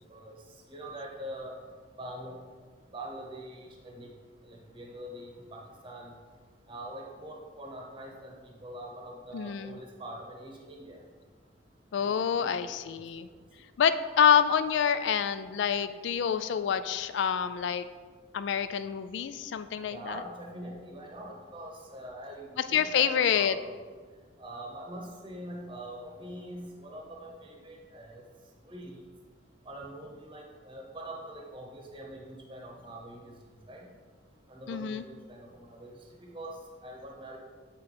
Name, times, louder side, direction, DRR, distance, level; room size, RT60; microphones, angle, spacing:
voice 1, 0.1-1.6 2.0-2.4 2.9-4.1 4.4-6.1 6.7-11.0 12.0-13.0 19.9-23.8 24.4-28.2 28.6-29.0 29.6-33.9 34.5-36.6 36.8-37.4, right 1 dB, 25° right, 0 dB, 0.9 m, -44 dB
voice 2, 9.3-9.8 11.9-13.3 13.8-17.9 18.3-20.2 22.7-23.5 34.7-35.0, left 8 dB, 70° left, 12 dB, 0.3 m, -27 dB
7.9 x 3.8 x 4.2 m, 1.6 s
head